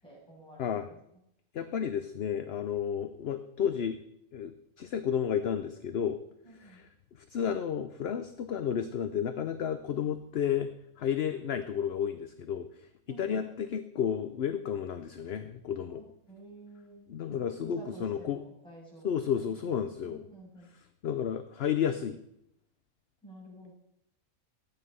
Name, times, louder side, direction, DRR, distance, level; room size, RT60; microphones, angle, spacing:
voice 1, 0.0-1.0 6.4-6.8 13.1-13.4 15.9-17.0 17.6-19.3 20.0-20.7 23.2-23.7, right 1 dB, 5° left, -6 dB, 7.0 m, -50 dB
voice 2, 1.5-4.0 4.3-6.2 6.6-10.7 11.0-12.9 13.2-16.0 17.1-18.4 19.0-20.3 21.0-22.2, left 8 dB, 55° left, 9 dB, 0.8 m, -32 dB
14.5 x 9.6 x 5.5 m, 0.78 s
omnidirectional pair, 1.4 m